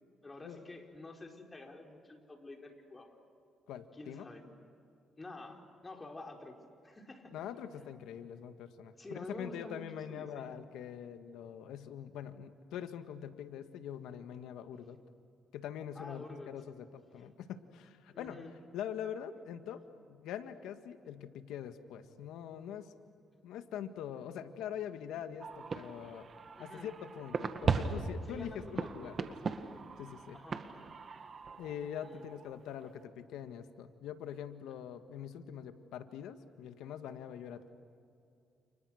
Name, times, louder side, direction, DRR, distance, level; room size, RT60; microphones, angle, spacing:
voice 1, 0.2-3.1 3.9-4.4 5.2-6.6 6.8-7.3 9.0-10.5 15.9-16.5 18.1-18.5 26.5-26.9 28.3-29.5 30.3-30.7 32.0-32.2, left 2 dB, 25° left, 2 dB, 4.6 m, -49 dB
voice 2, 3.7-4.3 7.3-15.0 15.5-18.4 18.7-19.8 20.1-22.9 23.4-26.3 26.6-29.4 30.0-30.4 31.6-37.7, left 9 dB, 90° left, 9 dB, 1.7 m, -44 dB
sound 1, 25.4-32.6, right 5 dB, 45° right, 1.8 m, -38 dB
30.0 x 29.5 x 6.5 m, 2.5 s
cardioid pair, 90°, 0 cm